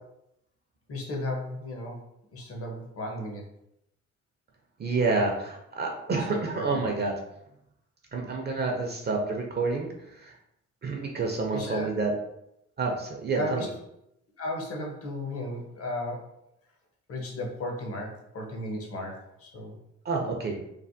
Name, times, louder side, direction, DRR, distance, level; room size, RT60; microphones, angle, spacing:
voice 1, 0.9-2.0 2.3-3.5 6.1-7.0 11.5-11.9 13.3-13.7 14.4-16.3 17.1-19.8, left 1 dB, 50° left, 1 dB, 0.9 m, -35 dB
voice 2, 4.8-7.1 8.1-10.3 10.8-12.1 12.8-13.7 20.0-20.6, right 3 dB, 35° right, 1 dB, 0.5 m, -29 dB
3.3 x 2.2 x 2.6 m, 0.80 s
cardioid pair, 90°, 30 cm